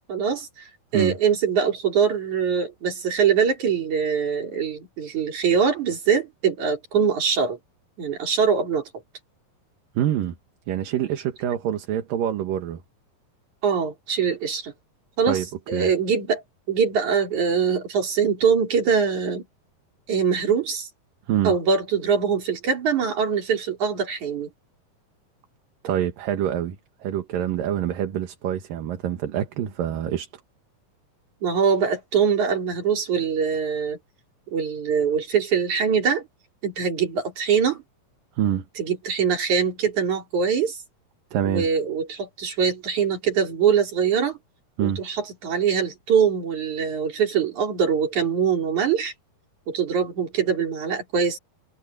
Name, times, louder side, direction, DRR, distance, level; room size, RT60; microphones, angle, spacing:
voice 1, 0.1-7.6 8.0-8.8 13.6-14.7 15.2-15.4 15.7-16.4 16.7-19.4 20.1-20.9 21.4-24.5 31.4-34.0 34.5-36.2 36.6-37.8 38.8-40.8 41.5-44.4 44.8-49.1 49.7-51.4, right 6 dB, 55° right, 5.3 m, -23 dB
voice 2, 9.9-10.4 10.7-12.8 15.3-15.5 15.7-15.9 21.3-21.6 25.8-30.3 38.4-38.7 41.3-41.7 44.8-45.0, right 10 dB, 75° right, 3.2 m, -26 dB
omnidirectional pair, 4.1 m